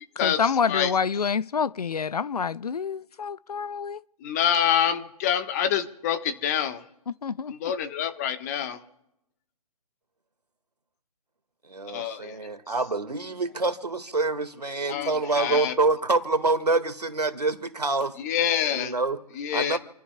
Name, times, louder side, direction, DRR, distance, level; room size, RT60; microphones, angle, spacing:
voice 1, 0.2-4.0 7.1-7.5, left 6 dB, 75° left, 0.5 m, -27 dB
voice 2, 4.2-6.8 7.5-8.8 11.9-12.3 14.9-15.7 18.2-18.9 19.4-19.8, left 9 dB, 25° left, 1.1 m, -26 dB
voice 3, 11.7-18.1 18.7-19.2 19.5-19.8, right 3 dB, 85° right, 1.7 m, -26 dB
29.5 x 14.0 x 2.2 m
figure-of-eight pair, 145°, 20 cm